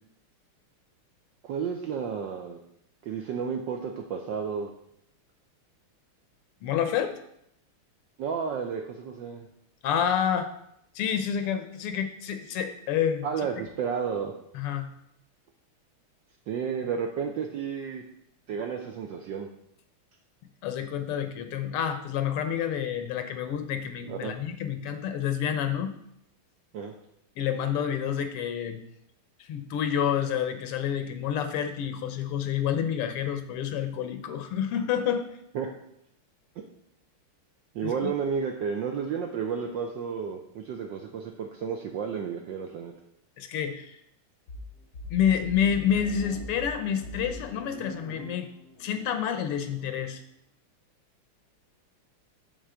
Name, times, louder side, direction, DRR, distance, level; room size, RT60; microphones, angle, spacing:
voice 1, 1.4-2.6 3.0-4.7 8.2-9.5 13.2-14.3 16.5-18.0 18.5-19.5 24.1-24.3 26.7-26.9 35.5-35.7 37.7-42.9, right 6 dB, 65° right, 3 dB, 1.2 m, -32 dB
voice 2, 6.6-7.1 9.8-10.5 11.0-13.3 14.5-14.9 20.6-25.9 27.4-28.8 29.5-35.3 37.8-38.1 43.4-44.0 45.1-48.5 48.8-50.2, left 8 dB, 85° left, 8 dB, 1.8 m, -28 dB
sound 1, 44.5-50.1, left 2 dB, 50° left, 1.7 m, -42 dB
8.8 x 3.8 x 6.9 m, 0.75 s
omnidirectional pair, 2.4 m